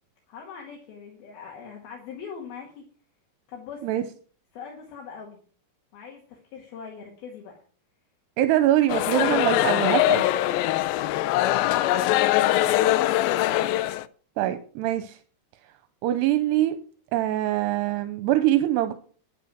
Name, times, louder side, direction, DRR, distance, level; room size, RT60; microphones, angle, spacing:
voice 1, 0.3-2.8 3.5-4.0 4.5-5.4 5.9-7.5 13.3-13.9, left 6 dB, 65° left, -1 dB, 3.7 m, -42 dB
voice 2, 8.4-10.2 14.4-15.2 16.0-16.8 17.1-18.9, right 13 dB, 85° right, 10 dB, 2.8 m, -23 dB
sound 1, 8.9-14.0, left 14 dB, 85° left, 2.1 m, -22 dB
10.5 x 9.2 x 6.1 m, 0.43 s
omnidirectional pair, 4.9 m